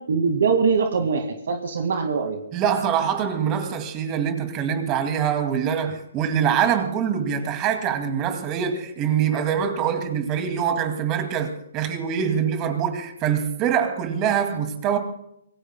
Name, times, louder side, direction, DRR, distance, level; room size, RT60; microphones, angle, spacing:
voice 1, 0.1-2.4, right 5 dB, 65° right, 2.0 m, -22 dB
voice 2, 2.5-15.0, right 8 dB, 25° right, 2.3 m, -24 dB
26.0 x 18.5 x 2.2 m
hypercardioid pair, 145°, 0 cm